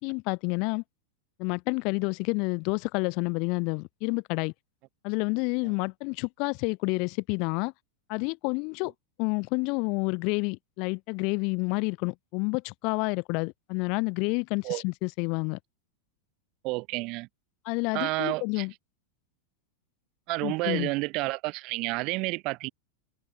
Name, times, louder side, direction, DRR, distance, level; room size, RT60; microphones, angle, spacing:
voice 1, 0.0-0.8 1.4-4.5 5.0-7.7 8.1-8.9 9.2-15.6 17.7-18.7 20.4-20.9, left 32 dB, 45° left, 0.3 m, -29 dB
voice 2, 16.6-17.3 17.9-18.7 20.3-22.7, right 24 dB, 40° right, 0.3 m, -30 dB
figure-of-eight pair, 90°, 0 cm